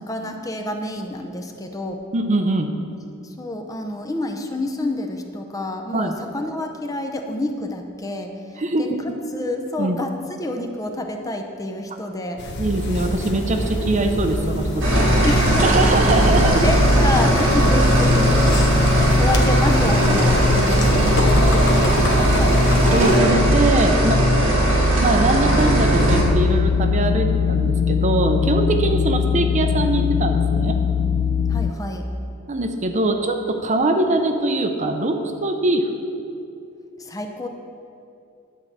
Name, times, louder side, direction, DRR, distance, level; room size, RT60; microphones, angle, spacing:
voice 1, 0.1-2.0 3.2-8.9 9.3-12.4 15.2-16.0 16.4-22.6 31.5-32.1 37.0-37.5, left 1 dB, 15° left, 3 dB, 0.6 m, -28 dB
voice 2, 2.1-2.7 5.9-6.2 8.6-9.0 9.8-10.0 12.6-15.0 15.6-16.7 22.9-24.2 25.0-30.8 32.5-36.0, right 2 dB, 35° right, 5 dB, 0.6 m, -22 dB
sound 1, 12.4-23.2, equal, 55° left, 1.0 m, -25 dB
sound 2, 14.8-26.2, equal, 70° right, 1.9 m, -17 dB
sound 3, 26.1-31.7, left 7 dB, 80° left, 0.3 m, -21 dB
10.0 x 4.7 x 7.3 m, 2.6 s
head